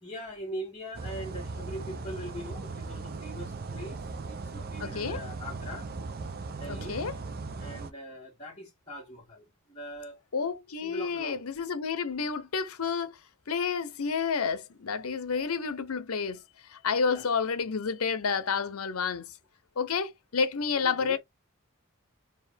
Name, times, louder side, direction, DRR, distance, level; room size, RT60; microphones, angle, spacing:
voice 1, 0.0-4.0 4.3-5.9 6.5-7.0 7.6-9.4 9.7-10.2 10.8-11.4 17.1-17.3 20.7-21.2, equal, 20° left, 1.8 m, -41 dB
sound 1, 0.9-7.9, right 3 dB, 45° right, 0.5 m, -38 dB
voice 2, 4.8-5.2 6.7-7.1 10.3-13.1 13.5-16.4 16.7-19.2 19.8-21.2, left 5 dB, 80° left, 0.7 m, -30 dB
4.4 x 2.5 x 3.4 m
head